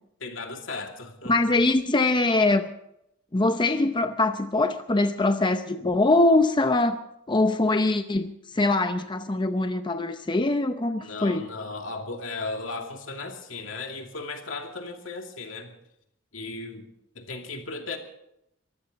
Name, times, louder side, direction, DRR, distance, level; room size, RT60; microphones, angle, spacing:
voice 1, 0.2-1.3 11.0-15.7 16.3-16.9 17.2-18.0, left 3 dB, 80° left, 3 dB, 2.5 m, -36 dB
voice 2, 1.3-2.7 3.3-7.0 7.3-11.5, left 2 dB, 25° left, 8 dB, 0.7 m, -23 dB
23.5 x 15.0 x 4.1 m, 0.79 s
head